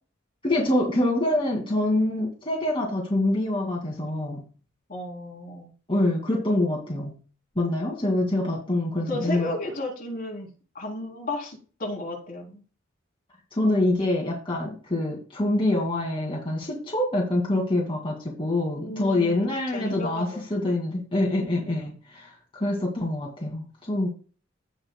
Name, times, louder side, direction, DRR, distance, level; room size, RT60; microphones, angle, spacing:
voice 1, 0.4-4.4 5.9-7.2 7.6-9.5 13.5-24.1, left 1 dB, 25° left, -3 dB, 2.4 m, -25 dB
voice 2, 4.9-5.7 9.1-10.5 10.7-12.6 18.8-20.4, left 1 dB, 45° left, -1 dB, 3.6 m, -33 dB
17.0 x 5.9 x 2.3 m, 0.37 s
head